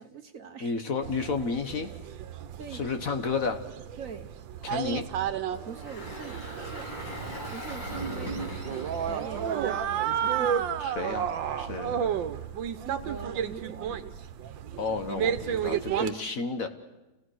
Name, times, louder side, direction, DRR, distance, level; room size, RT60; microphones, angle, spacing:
voice 1, 0.0-0.7 2.6-2.9 4.0-4.3 5.6-6.9 7.5-10.8 12.8-14.0, right 6 dB, 50° right, 7 dB, 1.2 m, -44 dB
voice 2, 0.6-1.9 2.7-3.6 4.6-5.1 10.8-11.3 11.6-12.2 14.8-16.7, left 4 dB, 50° left, 7 dB, 1.4 m, -31 dB
sound 1, 1.0-16.1, right 8 dB, 80° right, 1.6 m, -32 dB
Engine, 5.5-10.8, right 1 dB, 80° left, 6.8 m, -39 dB
29.5 x 16.5 x 6.3 m, 1.1 s
omnidirectional pair, 2.0 m